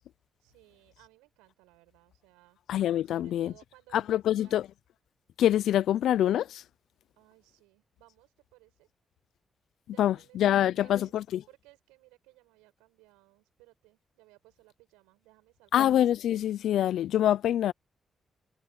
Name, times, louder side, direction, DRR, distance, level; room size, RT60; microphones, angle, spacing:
voice 1, 0.4-2.6 3.0-4.6 7.2-8.9 9.9-11.2 11.5-15.9, right 22 dB, 90° right, 7.7 m, -60 dB
voice 2, 2.7-3.5 3.9-4.7 5.4-6.6 10.0-11.4 15.7-17.7, left 11 dB, 75° left, 0.6 m, -25 dB
hypercardioid pair, 40°, 0 cm